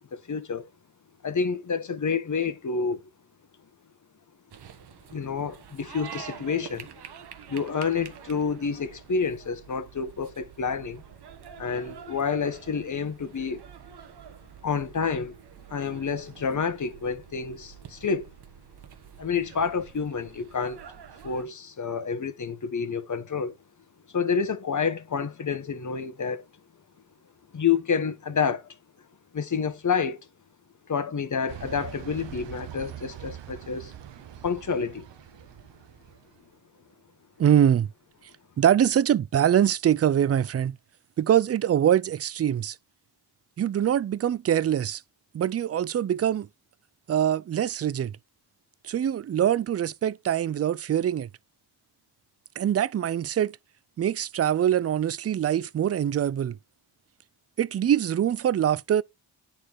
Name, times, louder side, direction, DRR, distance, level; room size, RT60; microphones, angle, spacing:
voice 1, 0.1-0.7 1.2-3.0 5.1-6.9 7.5-11.0 11.6-13.6 14.6-15.3 15.7-18.3 19.2-20.8 21.2-23.5 24.1-26.4 27.5-28.7 29.3-30.3 30.9-33.9 34.4-35.1, left 5 dB, 45° left, 1.4 m, -29 dB
sound 1, 4.5-21.5, right 8 dB, 65° right, 1.2 m, -47 dB
sound 2, 31.5-36.3, right 11 dB, 80° right, 1.0 m, -43 dB
voice 2, 37.4-37.9 38.6-40.8 41.2-42.8 43.6-45.0 45.3-46.5 47.1-48.1 48.8-51.3 52.6-53.6 54.0-56.6 57.6-59.0, right 10 dB, 35° right, 0.4 m, -23 dB
9.6 x 4.3 x 4.7 m
cardioid pair, 75°, 42 cm